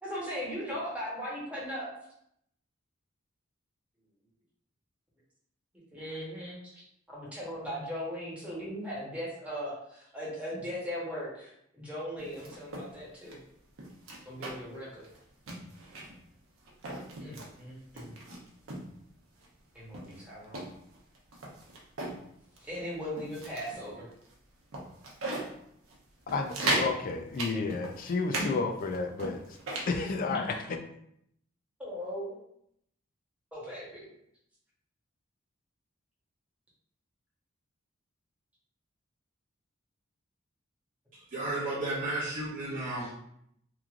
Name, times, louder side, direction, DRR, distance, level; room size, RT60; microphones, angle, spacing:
voice 1, 0.0-1.9 5.9-6.8 7.1-13.4 14.2-15.1 17.2-18.1 19.7-20.6 22.6-24.1 28.3-28.6 30.3-30.4 31.8-32.4 33.5-34.1, equal, 5° right, -7 dB, 1.0 m, -38 dB
sound 1, 12.2-12.9 13.2-13.4 13.8-14.8 15.0-15.2 15.5-16.2 16.7-17.5 18.0-18.9 19.4-19.5 19.9-22.2 22.6-22.8 23.2-23.8 24.2-24.3 24.7-25.5 25.9-26.0 26.3-26.9 27.3-28.5 28.8-29.9, right 2 dB, 90° right, 0.6 m, -36 dB
voice 2, 26.3-29.4 29.9-30.6, left 4 dB, 45° left, 5 dB, 0.3 m, -31 dB
voice 3, 41.1-43.1, right 2 dB, 40° right, -7 dB, 0.5 m, -33 dB
3.0 x 2.4 x 2.4 m, 0.73 s
head